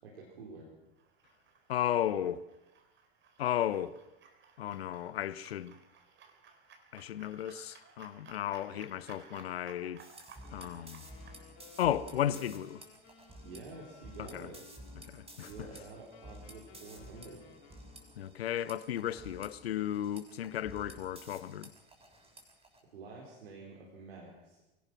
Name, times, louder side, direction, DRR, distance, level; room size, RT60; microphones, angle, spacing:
voice 1, 0.0-0.7 13.4-14.6 15.4-17.4 22.9-24.7, right 3 dB, 75° right, 4.4 m, -49 dB
sound 1, 0.9-11.4, right 5 dB, 35° right, 3.9 m, -58 dB
voice 2, 1.7-2.4 3.4-4.0 4.6-5.7 6.9-10.0 10.5-11.0 11.8-12.8 14.2-14.5 15.1-15.5 18.2-21.7, left 11 dB, 75° left, 0.8 m, -34 dB
sound 2, 10.0-22.8, equal, 20° right, 6.7 m, -53 dB
Wind instrument woodwind instrument, 10.4-18.4, left 6 dB, 45° left, 2.8 m, -59 dB
23.0 x 18.0 x 6.2 m
figure-of-eight pair, 80°, 31 cm